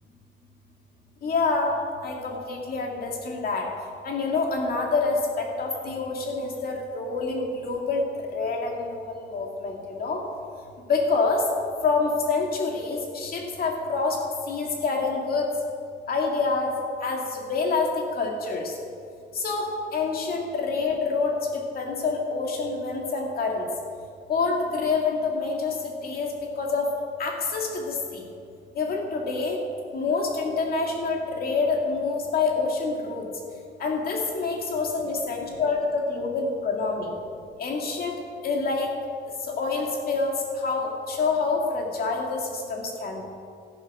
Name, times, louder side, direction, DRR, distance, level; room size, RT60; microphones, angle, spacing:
voice 1, 1.2-1.7 2.0-3.7 4.0-8.0 8.3-10.2 10.9-11.4 11.8-14.2 14.5-15.5 16.1-16.8 17.0-18.7 19.3-23.7 24.3-26.9 27.2-28.3 28.7-29.6 29.9-33.3 33.8-37.1 37.6-38.2 38.4-38.9 39.4-43.2, left 4 dB, 50° left, 0 dB, 2.4 m, -27 dB
13.5 x 11.0 x 6.1 m, 2.4 s
cardioid pair, 165°, 19 cm